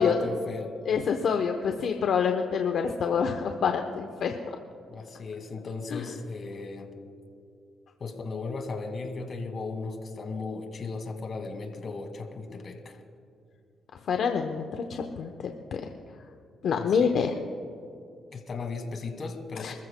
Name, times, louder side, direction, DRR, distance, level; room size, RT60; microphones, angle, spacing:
voice 1, 0.0-0.8 4.9-6.9 8.0-13.0 16.8-17.2 18.3-19.7, left 4 dB, 50° left, 4 dB, 2.1 m, -36 dB
voice 2, 0.9-4.3 5.9-6.0 14.1-14.6 14.9-15.8 16.6-17.3 19.6-19.7, left 6 dB, 70° left, 4 dB, 0.9 m, -26 dB
27.5 x 14.5 x 2.2 m, 2.5 s
cardioid pair, 90°, 0 cm